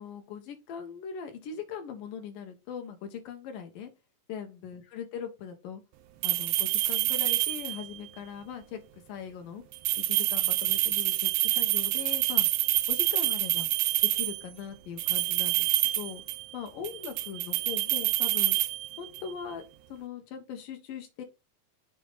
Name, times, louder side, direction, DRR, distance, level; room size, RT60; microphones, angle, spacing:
voice 1, 0.0-3.9 4.3-5.8 6.2-8.8 9.1-9.6 10.0-12.5 12.9-13.7 14.1-15.7 16.0-16.2 16.5-18.6 19.0-19.6 19.9-21.2, left 7 dB, 75° left, 6 dB, 3.0 m, -40 dB
sound 1, 6.2-8.0 9.7-14.5 15.0-16.5 16.8-19.3, right 15 dB, 80° right, 1.9 m, -27 dB
7.6 x 5.0 x 4.0 m, 0.28 s
omnidirectional pair, 3.9 m